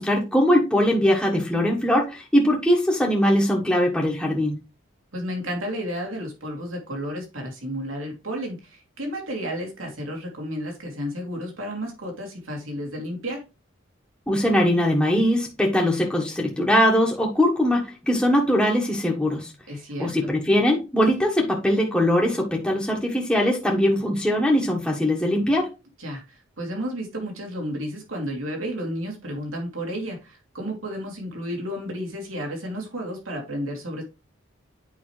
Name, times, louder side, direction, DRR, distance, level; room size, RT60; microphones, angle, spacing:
voice 1, 0.0-4.5 14.3-19.5 20.0-25.7, equal, 5° left, 1.3 m, -21 dB
voice 2, 5.1-13.4 19.7-20.3 26.0-34.0, equal, 80° right, 3.0 m, -32 dB
8.9 x 5.1 x 3.2 m
head